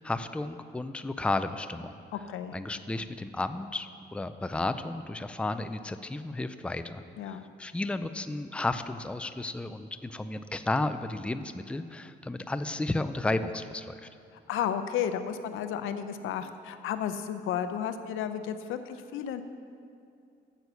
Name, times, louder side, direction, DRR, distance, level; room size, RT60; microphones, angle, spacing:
voice 1, 0.0-2.0 2.5-14.1, left 2 dB, 5° left, 10 dB, 0.4 m, -33 dB
voice 2, 2.1-2.6 7.2-7.5 14.5-19.4, left 9 dB, 85° left, 10 dB, 0.6 m, -33 dB
9.2 x 8.0 x 7.0 m, 2.5 s
cardioid pair, 90°, 20 cm